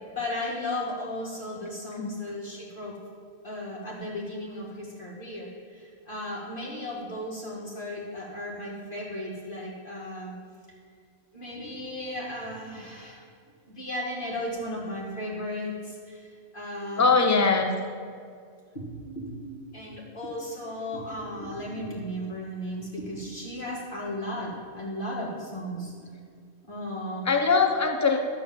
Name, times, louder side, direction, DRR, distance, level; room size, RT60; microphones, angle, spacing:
voice 1, 0.1-2.9 3.4-10.3 11.3-13.2 13.7-16.3 16.5-17.1 18.7-19.4 19.7-26.0 26.7-27.3, left 1 dB, 35° left, -4 dB, 2.4 m, -35 dB
voice 2, 17.0-17.7 27.2-28.2, left 4 dB, 15° left, 3 dB, 0.6 m, -21 dB
12.5 x 4.5 x 7.2 m, 2.2 s
omnidirectional pair, 1.5 m